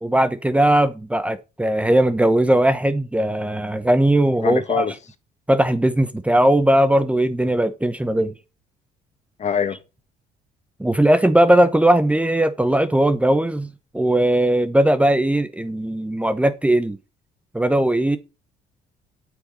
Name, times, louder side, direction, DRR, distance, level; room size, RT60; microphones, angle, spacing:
voice 1, 0.0-4.9 5.5-8.3 10.8-13.7 13.9-17.0 17.5-18.2, right 1 dB, 5° right, 1.1 m, -18 dB
voice 2, 4.4-4.9 9.4-9.8, left 7 dB, 45° left, 1.9 m, -23 dB
9.0 x 7.9 x 9.0 m
cardioid pair, 110°, 17 cm